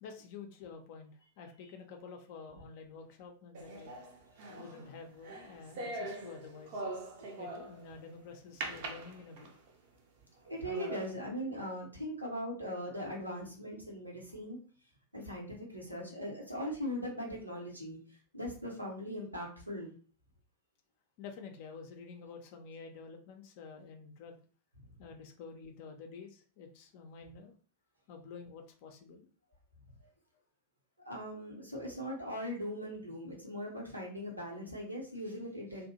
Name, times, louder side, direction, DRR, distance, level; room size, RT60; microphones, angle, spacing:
voice 1, 0.0-3.9 4.5-6.9 7.4-9.6 21.2-24.4 25.0-27.6 28.1-29.3, left 5 dB, 50° left, 4 dB, 0.5 m, -49 dB
sound 1, 3.5-7.9 8.6-9.7 10.2-10.3 10.6-11.1, right 2 dB, 50° right, 0.5 m, -42 dB
voice 2, 10.4-14.6 15.1-19.9 24.8-24.9 30.0-30.1 31.0-35.9, equal, 85° right, -2 dB, 0.8 m, -40 dB
2.6 x 2.1 x 2.7 m, 0.40 s
figure-of-eight pair, 90°, 0 cm